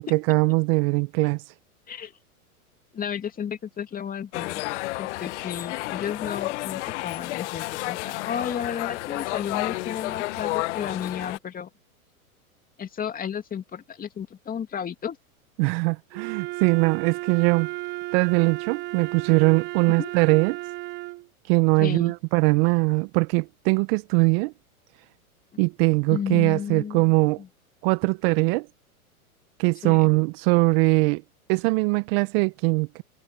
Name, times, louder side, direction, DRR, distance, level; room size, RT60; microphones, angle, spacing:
voice 1, 0.0-1.4 15.6-17.7 18.1-20.6 21.5-24.5 25.6-27.4 27.8-28.7 29.6-31.2 31.5-33.0, right 30 dB, 40° right, 1.1 m, -21 dB
voice 2, 2.9-4.6 5.0-11.7 12.8-15.2 20.0-20.1 21.8-22.1 25.5-25.6 26.1-27.5 29.8-30.1, left 8 dB, 20° left, 2.6 m, -33 dB
sound 1, 4.3-11.4, left 20 dB, 50° left, 1.4 m, -31 dB
Wind instrument woodwind instrument, 16.1-21.3, right 22 dB, 25° right, 0.6 m, -34 dB
hypercardioid pair, 115°, 44 cm